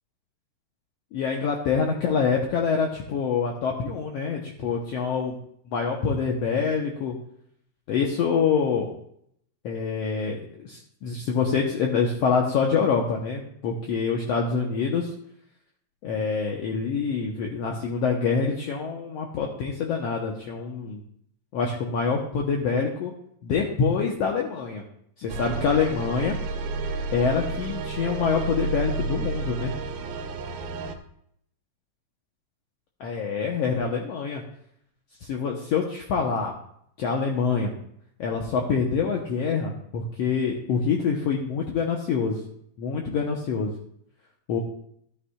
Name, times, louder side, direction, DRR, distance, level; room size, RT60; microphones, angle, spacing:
voice 1, 1.1-5.3 5.7-7.1 7.9-8.9 9.6-15.1 16.0-21.0 21.5-23.1 23.4-24.8 25.2-26.3 27.1-29.7 33.0-34.4 35.2-36.5 37.0-37.7 38.2-42.4 42.8-43.7 44.5-44.6, left 5 dB, 75° left, 0 dB, 1.5 m, -26 dB
sound 1, 25.3-30.9, right 3 dB, 80° right, 2.6 m, -31 dB
13.0 x 9.6 x 2.3 m, 0.69 s
omnidirectional pair, 4.1 m